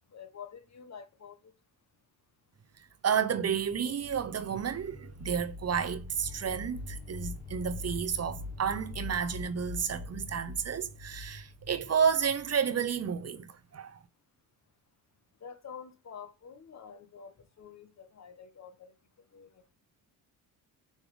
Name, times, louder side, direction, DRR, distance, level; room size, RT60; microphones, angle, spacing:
voice 1, 0.1-1.5 15.4-18.9 19.3-19.5, left 7 dB, 40° left, 1.3 m, -48 dB
voice 2, 3.0-14.0, right 7 dB, 40° right, 0.9 m, -31 dB
sound 1, 3.5-13.1, left 2 dB, 70° left, 1.7 m, -43 dB
6.3 x 3.3 x 5.2 m
supercardioid pair, 65°, 41 cm